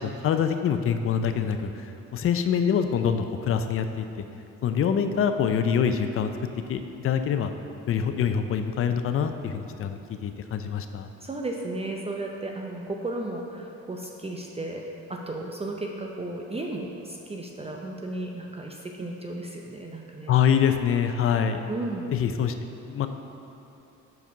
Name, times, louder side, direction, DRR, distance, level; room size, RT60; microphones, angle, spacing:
voice 1, 0.0-4.1 4.6-6.3 6.7-7.5 7.9-11.1 20.3-21.6 22.1-22.5 22.9-23.1, left 7 dB, 45° left, 8 dB, 0.5 m, -25 dB
voice 2, 11.2-14.8 15.1-20.3 21.7-22.1, right 2 dB, 20° right, 0 dB, 0.6 m, -34 dB
5.3 x 4.8 x 6.0 m, 2.8 s
cardioid pair, 90°, 30 cm